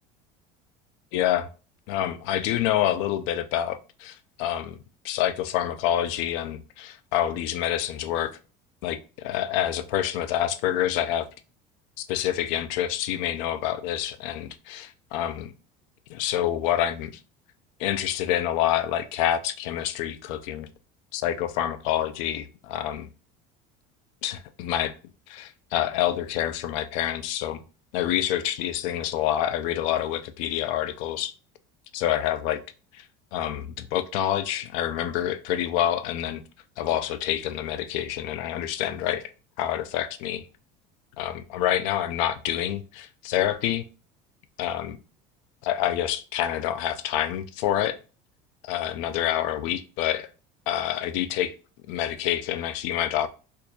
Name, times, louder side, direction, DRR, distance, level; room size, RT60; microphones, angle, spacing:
voice 1, 1.1-1.5 1.9-4.8 5.0-8.3 8.8-11.3 12.0-15.5 16.1-17.1 17.8-20.7 21.1-23.1 24.2-24.9 25.3-27.6 27.9-31.3 31.9-32.6 32.9-33.1 33.3-36.4 36.8-39.3 39.6-40.5 41.2-43.8 44.6-45.0 45.6-48.0 48.6-50.3 50.7-51.5 51.9-53.3, left 11 dB, 75° left, 0.4 m, -27 dB
4.3 x 2.5 x 2.7 m
cardioid pair, 155°, 17 cm